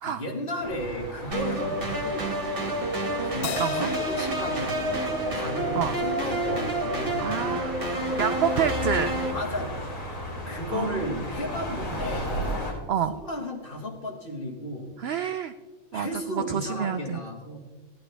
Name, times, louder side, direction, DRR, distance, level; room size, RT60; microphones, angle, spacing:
voice 1, 0.0-2.7 3.2-7.5 7.8-8.2 9.3-10.0 10.5-12.3 13.1-14.9 15.9-17.6, left 1 dB, 35° left, 2 dB, 1.6 m, -34 dB
sound 1, 0.6-12.7, left 1 dB, 85° left, 4.0 m, -35 dB
sound 2, 1.3-9.3, right 1 dB, 35° right, 1.7 m, -29 dB
Crash cymbal, 3.4-6.1, left 7 dB, 55° left, 0.9 m, -39 dB
voice 2, 3.6-3.9 5.8-5.9 7.2-7.8 8.2-9.2 10.7-11.2 12.9-13.1 15.0-15.5 15.9-17.2, right 8 dB, 75° right, 9 dB, 0.5 m, -28 dB
15.5 x 11.0 x 3.3 m, 1.3 s
omnidirectional pair, 1.6 m